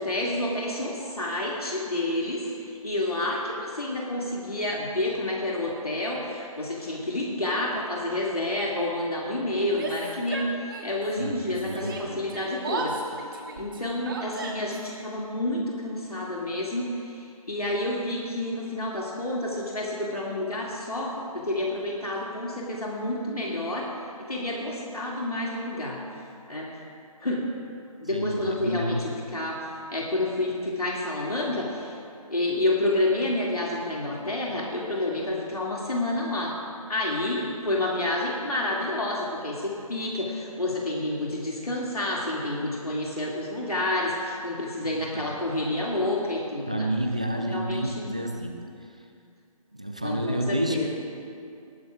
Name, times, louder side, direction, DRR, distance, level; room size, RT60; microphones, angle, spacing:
voice 1, 0.0-13.0 13.3-23.9 24.3-26.0 26.5-26.7 27.2-27.4 28.0-32.0 32.3-36.6 36.9-46.9 47.4-48.1 50.0-50.9, left 1 dB, 80° left, -3 dB, 2.3 m, -29 dB
Yell, 9.7-11.1 11.4-14.9, right 3 dB, 35° right, 1.6 m, -35 dB
voice 2, 11.2-12.1 28.1-29.0 44.8-45.3 46.7-48.6 49.7-50.9, right 1 dB, 10° right, 3 dB, 0.3 m, -30 dB
20.0 x 14.5 x 2.4 m, 2.5 s
figure-of-eight pair, 150°, 19 cm